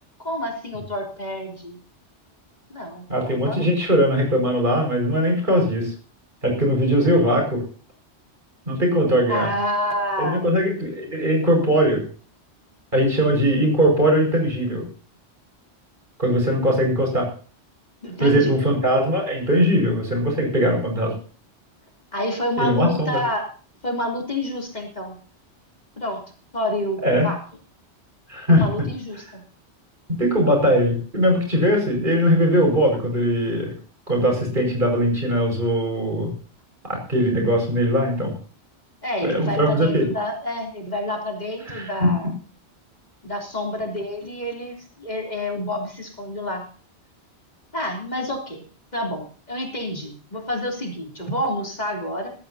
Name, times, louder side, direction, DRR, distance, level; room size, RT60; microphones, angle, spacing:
voice 1, 0.2-1.8 2.7-3.0 3.5-3.7 9.3-10.5 18.0-18.6 22.1-23.5 23.8-25.1 26.0-26.2 26.5-27.4 28.5-29.4 39.0-42.3 43.2-46.6 47.7-48.6 48.9-52.3, left 1 dB, 35° left, 1 dB, 3.6 m, -28 dB
voice 2, 3.1-5.9 6.4-7.6 8.7-9.5 10.2-12.0 12.9-14.8 16.2-17.3 18.2-21.1 22.6-23.2 27.0-27.3 28.3-28.7 30.1-33.7 34.1-36.3 36.8-38.3 39.2-40.0 41.7-42.1, equal, 45° right, 1 dB, 6.0 m, -20 dB
19.5 x 13.5 x 2.8 m, 0.41 s
omnidirectional pair, 1.2 m